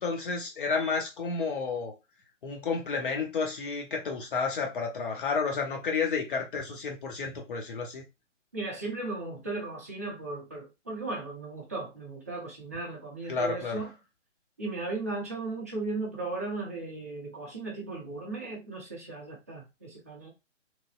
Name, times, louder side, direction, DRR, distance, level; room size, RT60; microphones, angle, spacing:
voice 1, 0.0-1.9 2.4-8.0 13.3-13.8, left 5 dB, 45° left, 0.8 m, -31 dB
voice 2, 8.5-13.9 14.6-20.3, right 3 dB, 15° right, 0.4 m, -36 dB
3.2 x 2.6 x 2.3 m
figure-of-eight pair, 135°, 37 cm